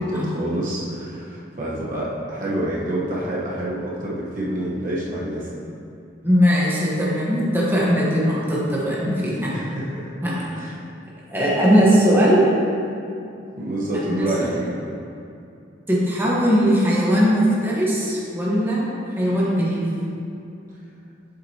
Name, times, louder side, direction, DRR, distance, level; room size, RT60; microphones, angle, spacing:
voice 1, 0.0-5.5 9.5-10.1 10.6-10.7 13.6-14.7, right 1 dB, 45° right, -6 dB, 1.1 m, -27 dB
voice 2, 6.2-9.5 10.2-10.5 11.3-12.4 14.2-14.5 15.9-18.9 19.2-19.8, equal, 10° right, -7 dB, 1.2 m, -19 dB
7.8 x 7.8 x 2.9 m, 2.6 s
head